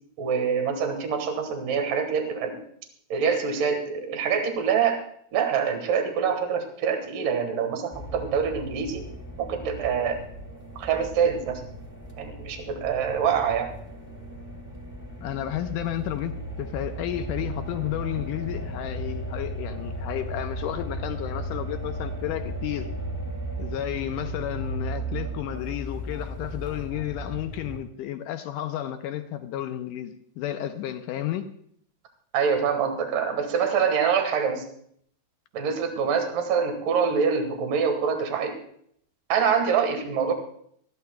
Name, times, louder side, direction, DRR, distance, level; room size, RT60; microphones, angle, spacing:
voice 1, 0.2-2.6 3.1-5.0 5.3-9.1 9.4-10.2 10.8-11.6 12.2-13.7 32.3-34.6 35.5-38.6 39.3-40.3, right 6 dB, 70° right, 5 dB, 3.1 m, -25 dB
sound 1, 7.9-27.8, right 1 dB, 5° right, 1.4 m, -35 dB
voice 2, 15.2-22.9 23.6-31.5, left 12 dB, 80° left, 7 dB, 2.0 m, -32 dB
20.0 x 13.5 x 2.3 m, 0.65 s
omnidirectional pair, 4.2 m